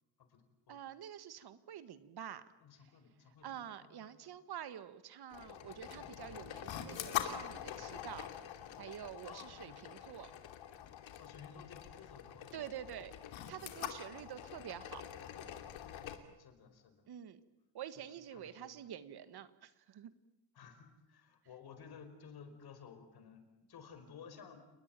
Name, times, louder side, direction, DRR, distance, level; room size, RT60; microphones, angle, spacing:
voice 1, 0.2-0.8 2.6-4.2 9.2-10.0 11.2-12.6 14.1-14.3 16.4-17.0 18.0-18.1 18.3-18.7 20.5-24.6, left 6 dB, 55° left, 8 dB, 5.1 m, -55 dB
voice 2, 0.7-2.4 3.4-8.3 8.8-10.3 12.5-13.1 13.5-15.1 17.1-17.4 17.7-20.1, right 10 dB, 55° right, 13 dB, 1.7 m, -48 dB
sound 1, 5.3-16.2, left 11 dB, 80° left, 3.0 m, -45 dB
29.5 x 20.0 x 9.0 m, 0.97 s
cardioid pair, 135°, 46 cm